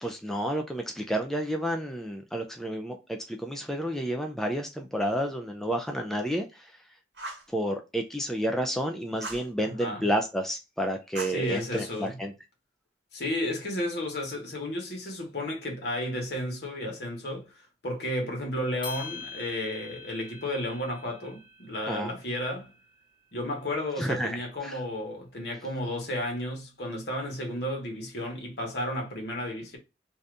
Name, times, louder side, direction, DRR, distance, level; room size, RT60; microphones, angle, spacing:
voice 1, 0.0-6.7 7.5-12.3 21.9-22.1 24.0-24.4 24.6-24.8, equal, ahead, 0.3 m, -30 dB
Fire, 7.1-7.5 9.2-9.5 11.1-12.1, right 2 dB, 65° right, 1.0 m, -40 dB
voice 2, 9.6-10.0 11.3-12.2 13.1-17.5 17.8-22.7 23.3-29.8, left 1 dB, 65° left, 1.2 m, -33 dB
sound 1, 18.8-23.2, left 5 dB, 25° left, 0.8 m, -45 dB
2.7 x 2.5 x 3.3 m
head